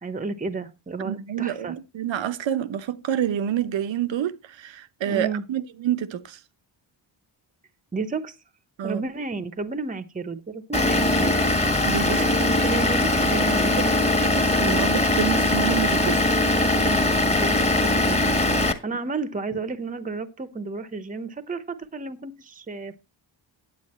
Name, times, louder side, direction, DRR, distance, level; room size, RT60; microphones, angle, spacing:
voice 1, 0.0-1.8 5.0-5.4 7.9-8.3 8.8-11.6 12.1-13.9 16.6-18.3 18.6-23.0, right 4 dB, 20° right, 0.8 m, -32 dB
voice 2, 1.0-6.4 8.8-9.0 11.8-12.5 13.8-16.2, right 10 dB, 85° right, 0.9 m, -28 dB
Vehicle / Engine, 10.7-18.7, left 2 dB, 15° left, 1.5 m, -21 dB
9.6 x 8.1 x 4.2 m
wide cardioid pair, 120°, 44 cm